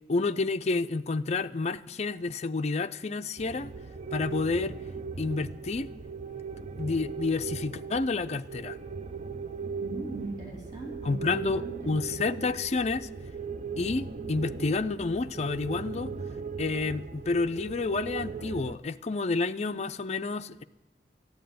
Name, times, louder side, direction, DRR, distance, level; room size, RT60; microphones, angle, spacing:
voice 1, 0.1-3.7 4.1-4.8 5.2-5.9 6.8-8.8 11.0-13.1 13.8-16.1 16.6-20.6, left 3 dB, 40° left, 0.5 m, -29 dB
sound 1, 3.4-18.8, right 5 dB, 40° right, 0.5 m, -38 dB
voice 2, 9.8-11.9, right 3 dB, 25° right, 3.1 m, -40 dB
14.0 x 9.0 x 9.3 m
head